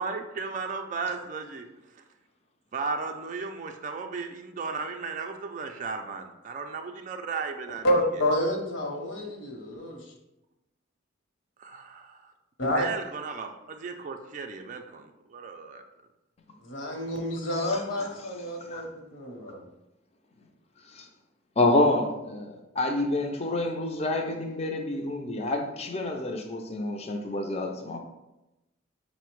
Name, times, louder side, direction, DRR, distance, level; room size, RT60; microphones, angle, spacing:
voice 1, 0.0-1.7 2.7-7.9 11.6-12.1 12.7-15.8, right 4 dB, 40° right, 5 dB, 0.3 m, -35 dB
voice 2, 7.8-10.0 12.6-12.9 16.6-19.7, left 1 dB, 70° left, 1 dB, 0.9 m, -29 dB
voice 3, 17.5-18.1 18.4-18.9 20.9-21.1 21.6-28.0, left 2 dB, 30° left, 2 dB, 0.5 m, -28 dB
5.5 x 2.1 x 4.5 m, 0.95 s
head